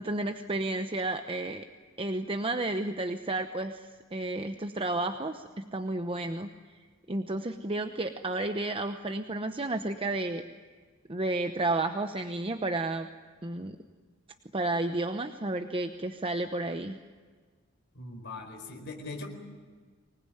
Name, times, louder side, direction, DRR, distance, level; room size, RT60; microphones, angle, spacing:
voice 1, 0.0-1.7 2.0-6.8 7.1-10.4 11.1-13.1 13.4-13.8 14.5-17.0, right 2 dB, 25° right, 6 dB, 0.9 m, -32 dB
voice 2, 17.9-19.3, left 3 dB, 55° left, 2 dB, 4.5 m, -40 dB
25.0 x 20.0 x 9.3 m, 1.5 s
head